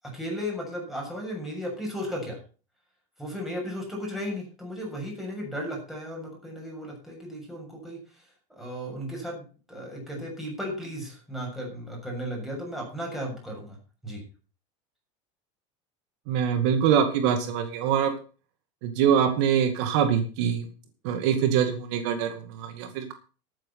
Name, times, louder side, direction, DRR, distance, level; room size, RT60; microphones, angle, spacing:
voice 1, 0.1-2.4 3.2-8.2 8.6-13.8 14.0-14.2, equal, ahead, -2 dB, 7.0 m, -35 dB
voice 2, 16.3-18.1 18.8-20.6 21.0-23.1, right 8 dB, 65° right, 7 dB, 2.2 m, -24 dB
14.0 x 9.2 x 5.8 m, 0.37 s
supercardioid pair, 150°, 15 cm